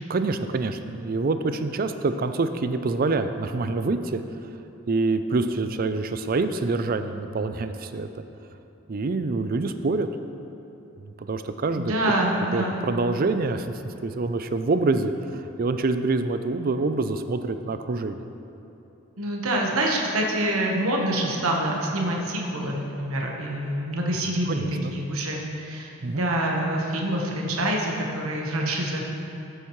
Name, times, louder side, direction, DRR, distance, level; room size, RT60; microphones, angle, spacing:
voice 1, 0.1-4.2 4.9-8.1 8.9-10.1 11.3-11.9 12.5-13.7 14.0-18.2 24.5-25.0 26.0-26.3, right 3 dB, 40° right, 9 dB, 0.4 m, -26 dB
voice 2, 11.8-12.8 19.2-24.6 24.9-29.0, right 1 dB, 75° right, -1 dB, 1.2 m, -26 dB
14.5 x 8.0 x 3.2 m, 2.9 s
head